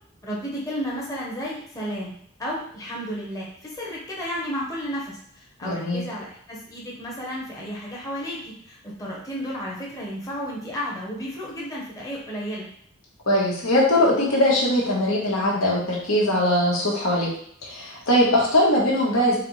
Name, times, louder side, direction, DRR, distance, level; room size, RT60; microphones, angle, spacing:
voice 1, 0.2-12.7, equal, 15° left, -5 dB, 0.8 m, -32 dB
voice 2, 5.6-6.0 13.3-17.3 17.6-19.4, left 1 dB, 85° left, -5 dB, 1.3 m, -21 dB
4.0 x 2.5 x 3.1 m, 0.64 s
head